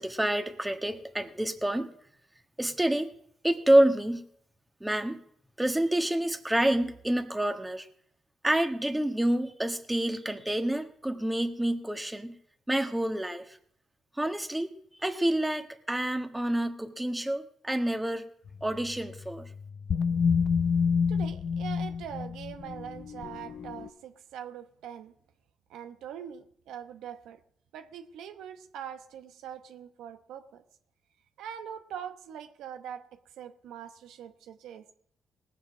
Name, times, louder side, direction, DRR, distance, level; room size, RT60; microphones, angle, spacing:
voice 1, 0.0-1.9 2.6-3.1 3.4-4.2 4.8-5.2 5.6-7.9 8.4-12.4 12.7-13.4 14.2-14.7 15.0-18.2 18.6-19.5, right 1 dB, 10° right, 6 dB, 1.5 m, -28 dB
sound 1, 18.5-23.9, left 6 dB, 60° left, 0.7 m, -29 dB
voice 2, 21.1-25.1 25.7-27.4 27.7-30.6 31.4-34.8, right 9 dB, 90° right, 8 dB, 1.0 m, -43 dB
19.0 x 7.4 x 6.0 m, 0.67 s
cardioid pair, 75°, 0 cm